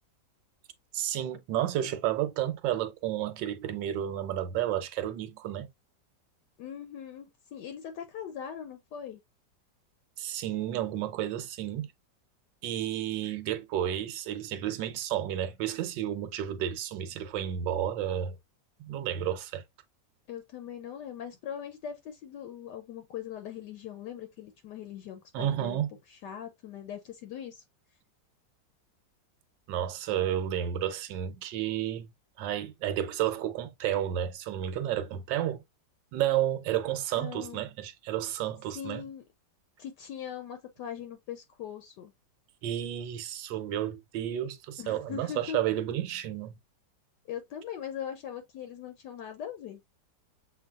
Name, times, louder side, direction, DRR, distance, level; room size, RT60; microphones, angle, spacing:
voice 1, 0.9-5.7 10.2-11.9 12.6-18.4 18.8-19.6 25.3-25.9 29.7-32.1 32.4-35.6 36.1-39.0 42.6-46.6, right 11 dB, 80° right, 1.3 m, -31 dB
voice 2, 6.6-9.2 20.3-25.8 26.1-27.6 37.2-37.6 38.7-39.2 39.8-42.1 44.8-45.6 47.3-49.8, left 9 dB, 75° left, 1.2 m, -41 dB
6.7 x 2.5 x 2.4 m
omnidirectional pair, 2.0 m